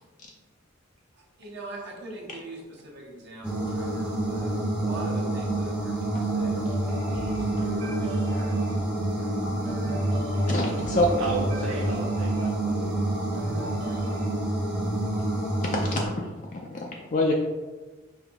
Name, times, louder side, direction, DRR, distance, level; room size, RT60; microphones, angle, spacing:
voice 1, 1.4-5.9 6.2-8.6, right 2 dB, 55° right, -3 dB, 1.1 m, -42 dB
sound 1, 3.4-16.1, right 2 dB, 5° right, 0.7 m, -28 dB
sound 2, 6.4-14.3, left 1 dB, 35° right, 1.3 m, -35 dB
sound 3, 7.7-14.0, right 4 dB, 80° left, 1.0 m, -46 dB
voice 2, 10.5-11.1 15.7-16.2 16.5-17.3, left 1 dB, 40° left, 0 dB, 0.4 m, -26 dB
voice 3, 11.1-14.2, right 4 dB, 90° right, -1 dB, 0.6 m, -35 dB
5.0 x 3.0 x 3.5 m, 1.3 s
head